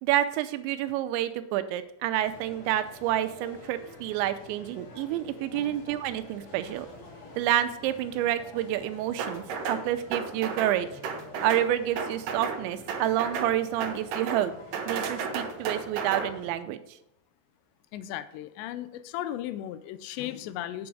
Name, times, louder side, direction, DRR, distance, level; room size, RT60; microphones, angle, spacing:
voice 1, 0.0-6.9 7.4-10.9 11.4-14.5 14.9-16.8, right 12 dB, 90° right, 11 dB, 3.0 m, -28 dB
sound 1, 2.2-16.5, left 2 dB, 45° left, 3.1 m, -49 dB
sound 2, 9.2-9.8 10.1-10.8 11.0-11.7 12.0-12.6 12.9-13.5 13.8-14.4 14.7-16.3, right 5 dB, 70° right, 2.1 m, -32 dB
voice 2, 17.9-20.9, left 12 dB, 85° left, 13 dB, 2.7 m, -36 dB
8.4 x 7.0 x 4.8 m, 0.82 s
omnidirectional pair, 5.1 m